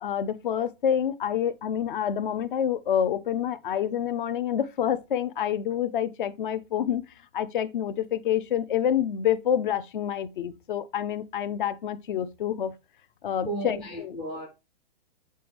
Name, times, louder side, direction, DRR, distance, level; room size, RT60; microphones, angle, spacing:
voice 1, 0.0-7.0 7.3-12.7 13.2-14.2, left 9 dB, 55° left, 0.6 m, -27 dB
voice 2, 13.5-14.5, right 1 dB, 5° left, 0.3 m, -34 dB
7.6 x 4.3 x 3.3 m
hypercardioid pair, 170°, 30 cm